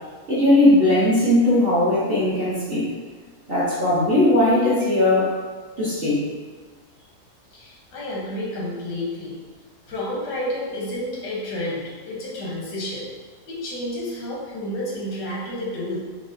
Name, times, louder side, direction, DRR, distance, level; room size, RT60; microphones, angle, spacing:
voice 1, 0.3-2.8 3.5-5.3 5.8-6.2, left 1 dB, 45° right, -10 dB, 0.8 m, -18 dB
voice 2, 7.5-9.4 9.9-13.1 13.5-16.0, left 1 dB, 90° left, -4 dB, 1.4 m, -30 dB
4.7 x 2.1 x 2.5 m, 1.4 s
omnidirectional pair, 1.8 m